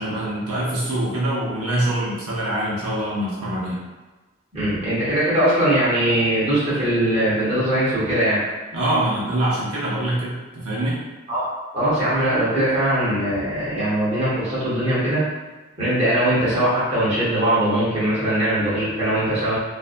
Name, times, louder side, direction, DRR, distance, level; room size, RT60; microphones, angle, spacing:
voice 1, 0.0-3.8 8.7-11.0, right 1 dB, 85° right, -7 dB, 0.7 m, -24 dB
voice 2, 4.5-8.4 11.3-11.5 11.7-15.2 15.8-19.6, right 1 dB, 30° right, -10 dB, 1.0 m, -21 dB
2.6 x 2.2 x 2.5 m, 1.2 s
head